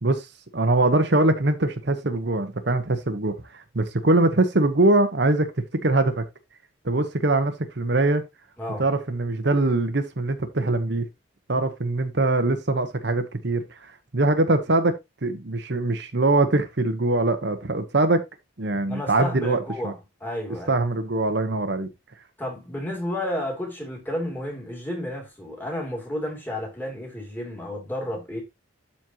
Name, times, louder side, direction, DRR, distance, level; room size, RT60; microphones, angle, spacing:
voice 1, 0.5-5.5 5.8-6.2 6.8-8.2 8.8-11.1 11.5-13.6 14.1-14.9 15.2-18.2 18.6-19.9 20.7-21.9, right 2 dB, 55° right, 1.0 m, -22 dB
voice 2, 18.9-20.7 22.4-28.4, left 1 dB, 10° left, 2.8 m, -32 dB
12.5 x 4.4 x 2.9 m
head